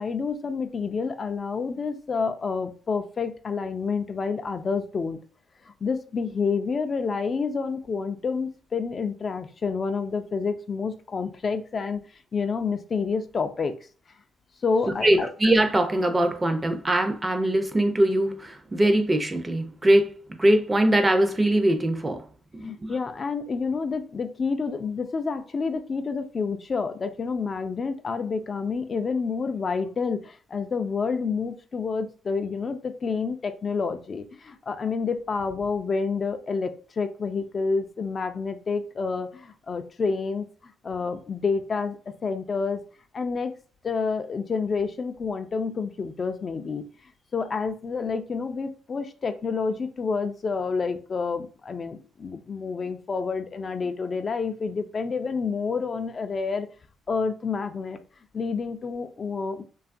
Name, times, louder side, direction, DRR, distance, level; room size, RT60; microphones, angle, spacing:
voice 1, 0.0-5.2 5.8-12.0 12.3-13.7 14.6-15.3 22.6-42.8 43.1-43.5 43.8-46.8 47.3-56.7 57.1-58.0 58.3-59.6, left 5 dB, 40° left, 0.3 m, -29 dB
voice 2, 15.0-20.1 20.4-22.2 22.5-22.9, right 1 dB, 20° right, 0.5 m, -22 dB
2.7 x 2.3 x 2.5 m
cardioid pair, 90°, 0 cm